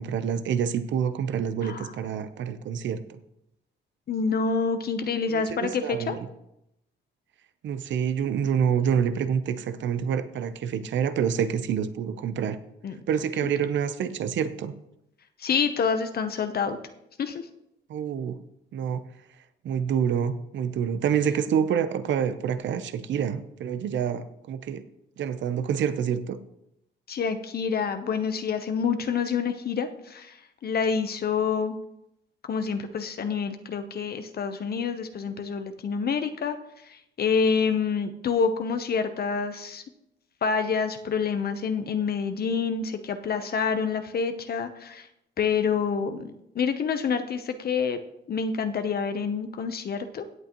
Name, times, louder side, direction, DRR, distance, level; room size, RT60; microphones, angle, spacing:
voice 1, 0.0-3.2 5.3-6.3 7.6-12.6 13.1-14.7 17.9-18.4 18.7-19.0 19.6-24.8 25.2-26.4, right 8 dB, 70° right, 12 dB, 0.8 m, -27 dB
voice 2, 4.1-6.2 12.8-13.0 15.4-16.8 17.2-17.4 27.1-31.8 32.5-36.6 36.8-39.8 40.4-45.1 45.4-48.0 48.3-50.2, left 5 dB, 50° left, 8 dB, 0.9 m, -27 dB
17.0 x 8.2 x 3.0 m, 0.81 s
cardioid pair, 90°, 20 cm